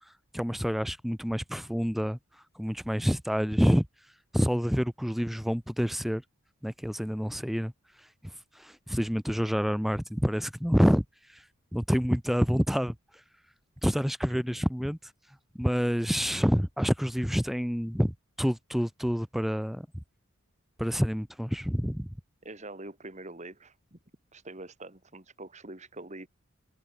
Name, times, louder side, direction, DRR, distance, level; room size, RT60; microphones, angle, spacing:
voice 1, 0.3-2.2 2.6-3.9 4.3-6.2 6.6-7.7 8.6-11.0 11.3-11.4 11.7-12.9 13.8-15.0 15.6-19.9 20.8-22.1, equal, ahead, 1.1 m, -27 dB
voice 2, 22.4-24.0 24.3-26.3, right 2 dB, 35° right, 2.7 m, -44 dB
head